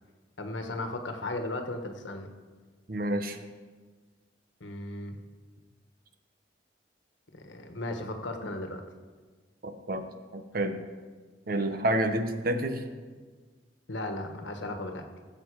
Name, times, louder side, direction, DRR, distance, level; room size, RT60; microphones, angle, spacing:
voice 1, 0.4-2.3 4.6-5.2 7.3-8.8 13.9-15.0, left 2 dB, 85° left, 5 dB, 1.3 m, -36 dB
voice 2, 2.9-3.4 9.6-10.0 10.3-10.8 11.5-12.8, right 1 dB, 50° right, 7 dB, 0.9 m, -29 dB
16.5 x 7.7 x 4.7 m, 1.5 s
head